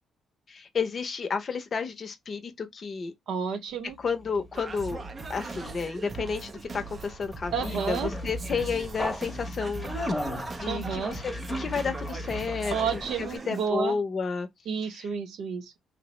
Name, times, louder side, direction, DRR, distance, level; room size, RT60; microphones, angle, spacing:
voice 1, 0.5-3.1 4.0-5.0 5.3-10.2 10.6-14.5 14.8-15.1, left 5 dB, 45° left, 0.6 m, -32 dB
voice 2, 3.3-4.0 7.5-8.1 10.7-11.2 12.7-14.0 14.7-15.8, right 6 dB, 75° right, 0.6 m, -30 dB
Conversation, 3.9-13.4, left 1 dB, 10° left, 0.7 m, -37 dB
Singing, 4.5-13.7, right 4 dB, 35° right, 0.4 m, -41 dB
2.9 x 2.0 x 2.9 m
cardioid pair, 90°, 0 cm